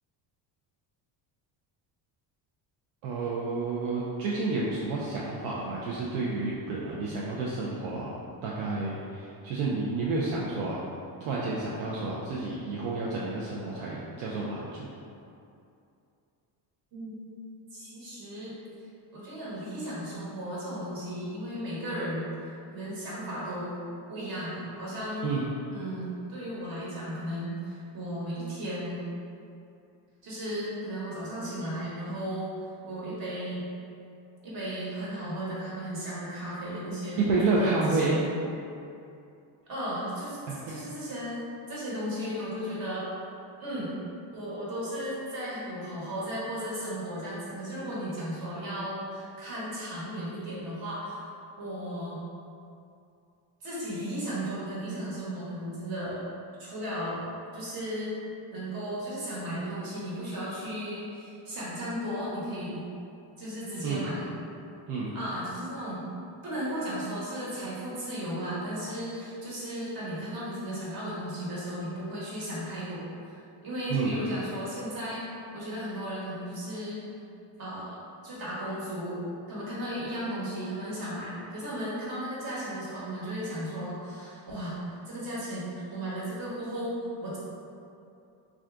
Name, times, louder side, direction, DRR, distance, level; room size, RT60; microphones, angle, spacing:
voice 1, 3.0-8.1 8.4-10.8 11.2-14.9 25.2-25.4 37.2-38.2 40.5-40.8 63.8-64.0 64.9-65.1 73.9-74.2, right 3 dB, 75° right, -6 dB, 0.6 m, -30 dB
voice 2, 17.7-18.5 19.1-23.8 24.1-25.4 25.7-29.0 30.2-32.5 32.8-33.7 34.4-38.1 39.7-41.4 41.7-43.1 43.6-43.9 44.3-51.3 51.6-52.2 53.6-56.2 56.6-57.2 57.5-58.1 58.5-62.9 63.4-64.3 65.1-66.1 66.4-75.2 75.5-77.0 77.6-78.0 78.2-79.2 79.5-87.4, equal, 45° right, -8 dB, 1.2 m, -35 dB
2.5 x 2.4 x 3.4 m, 2.6 s
cardioid pair, 115°, 48 cm